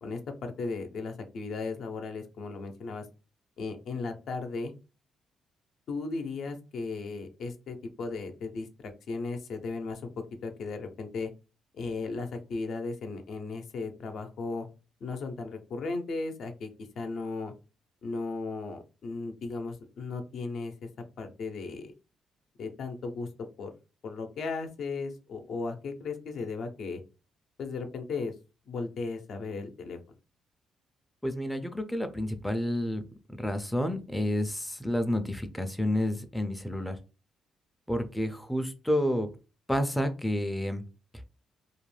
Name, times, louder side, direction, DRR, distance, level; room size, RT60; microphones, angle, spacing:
voice 1, 0.0-3.0 3.6-4.7 5.9-8.7 9.1-10.1 10.4-11.3 11.7-14.7 15.0-16.7 17.0-17.5 18.0-20.9 21.2-21.9 22.6-23.3 23.6-23.7 24.0-27.0 27.6-28.3 28.7-30.0, left 3 dB, 65° left, 6 dB, 0.5 m, -36 dB
voice 2, 31.2-33.0 33.4-37.0 37.9-39.3 39.7-40.8, left 1 dB, 5° left, 6 dB, 0.4 m, -30 dB
2.4 x 2.1 x 3.1 m, 0.31 s
cardioid pair, 90°, 0 cm